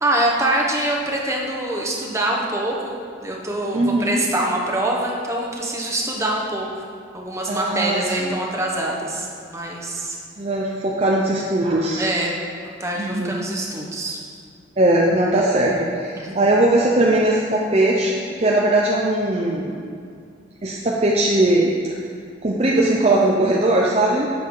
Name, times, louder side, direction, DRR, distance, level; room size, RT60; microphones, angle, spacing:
voice 1, 0.0-3.0 3.2-6.8 7.1-9.3 9.5-10.2 12.0-12.4 12.8-14.2 16.2-16.4, right 1 dB, 15° right, -2 dB, 1.2 m, -24 dB
voice 2, 3.7-4.2 7.5-8.4 10.4-12.1 13.0-13.4 14.8-19.8 20.6-22.0 22.4-24.3, right 1 dB, 35° right, -3 dB, 0.7 m, -19 dB
11.5 x 7.8 x 3.9 m, 2.3 s
head